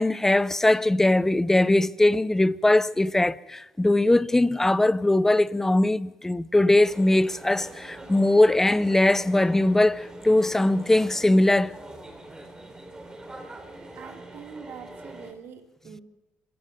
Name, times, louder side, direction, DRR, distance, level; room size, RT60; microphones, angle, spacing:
voice 1, 0.0-11.7, left 1 dB, 10° left, 0.6 m, -21 dB
sound 1, 6.8-15.3, right 2 dB, 15° right, 3.6 m, -43 dB
voice 2, 14.0-16.0, right 7 dB, 65° right, 3.2 m, -44 dB
26.5 x 15.5 x 6.9 m
cardioid pair, 105°, 4 cm